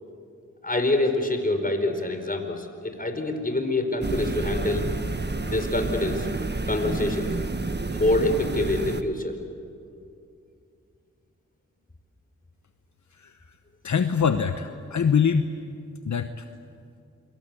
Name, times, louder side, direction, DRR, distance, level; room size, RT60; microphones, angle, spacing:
voice 1, 0.6-4.9 5.4-6.3 6.7-7.3 7.9-9.4, left 2 dB, 30° left, 6 dB, 4.6 m, -26 dB
sound 1, 4.0-9.0, right 3 dB, 35° right, 1.5 m, -29 dB
voice 2, 13.8-15.5 16.0-16.5, left 6 dB, 70° left, 9 dB, 1.0 m, -24 dB
27.5 x 24.0 x 8.4 m, 2.4 s
cardioid pair, 45°, 30 cm